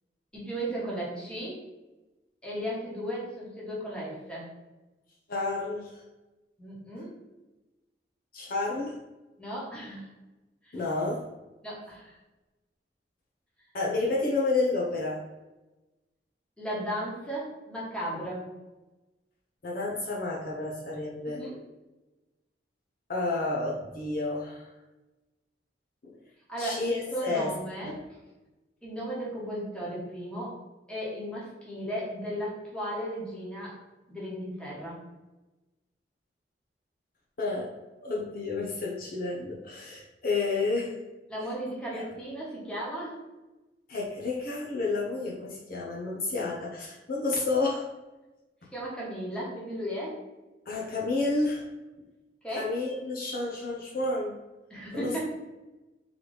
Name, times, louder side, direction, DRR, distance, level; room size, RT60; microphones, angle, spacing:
voice 1, 0.3-1.6 2.4-4.5 6.6-7.1 9.4-10.1 10.6-10.7 11.6-12.1 16.6-18.5 21.3-21.6 26.5-28.0 28.8-30.6 30.9-33.8 34.1-35.0 41.3-43.2 48.7-50.2 52.4-52.7 54.7-55.2, equal, 5° left, -6 dB, 1.3 m, -35 dB
voice 2, 5.3-6.0 8.3-9.0 10.7-11.3 13.7-15.2 19.6-21.5 23.1-24.7 26.0-26.2 26.6-27.5 27.8-28.0 37.4-41.0 41.9-42.0 43.9-47.9 50.7-51.7 52.5-54.4 54.9-55.2, left 3 dB, 55° left, -3 dB, 0.7 m, -30 dB
3.9 x 3.1 x 3.3 m, 1.1 s
head